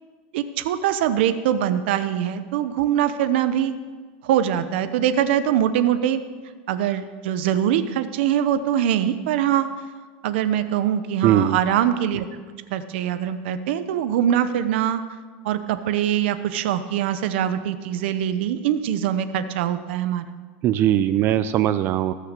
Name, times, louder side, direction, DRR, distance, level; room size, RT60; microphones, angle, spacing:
voice 1, 0.3-3.7 4.2-6.2 6.7-9.7 10.2-12.3 12.7-15.0 15.4-20.3, right 10 dB, 75° right, 12 dB, 0.8 m, -23 dB
voice 2, 11.2-11.6 20.6-22.1, right 11 dB, 35° right, 13 dB, 0.5 m, -20 dB
19.0 x 6.6 x 6.7 m, 1.5 s
supercardioid pair, 150°, 6 cm